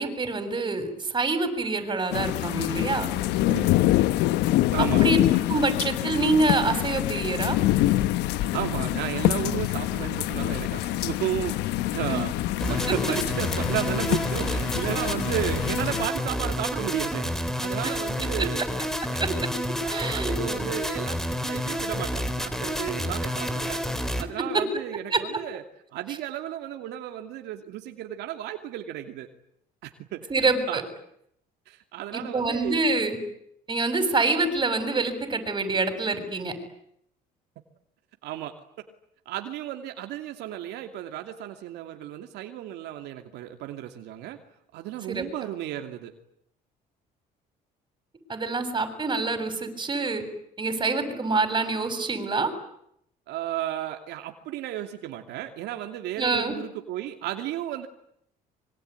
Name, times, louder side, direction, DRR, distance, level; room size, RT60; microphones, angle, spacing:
voice 1, 0.0-3.1 5.0-5.2 5.5-7.6 12.1-12.2 17.8-18.0 19.2-19.3 19.9-20.4 24.5-24.6 25.1-25.2 30.3-30.8 32.1-33.2 33.7-36.5 45.1-45.3 48.3-50.2 50.6-52.5 56.2-56.6, right 3 dB, 25° right, 9 dB, 7.3 m, -26 dB
sound 1, 2.1-16.1, left 15 dB, 90° left, 1.2 m, -25 dB
voice 2, 4.7-5.0 8.5-12.3 12.7-18.6 19.1-19.4 19.8-23.8 24.2-25.6 25.9-29.3 29.8-30.3 30.7-30.9 31.7-32.8 38.2-38.5 39.3-44.4 44.7-46.1 53.3-57.9, right 12 dB, 85° right, 5 dB, 2.7 m, -33 dB
sound 2, 12.6-24.2, equal, 5° left, 3.3 m, -29 dB
25.5 x 24.0 x 9.6 m, 0.73 s
cardioid pair, 110°, 17 cm